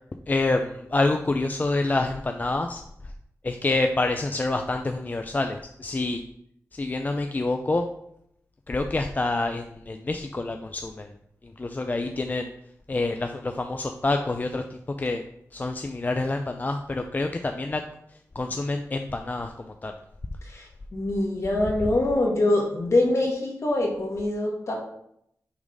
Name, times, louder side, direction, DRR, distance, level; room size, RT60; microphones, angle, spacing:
voice 1, 0.3-2.8 3.4-6.2 6.7-7.8 8.7-11.1 11.6-12.5 12.9-14.6 15.0-15.2 15.5-17.8 18.4-19.5 19.8-19.9, left 2 dB, 30° left, 5 dB, 0.4 m, -27 dB
voice 2, 20.5-24.7, left 2 dB, 55° left, -1 dB, 1.9 m, -24 dB
6.0 x 4.0 x 5.3 m, 0.74 s
wide cardioid pair, 100°, 6 cm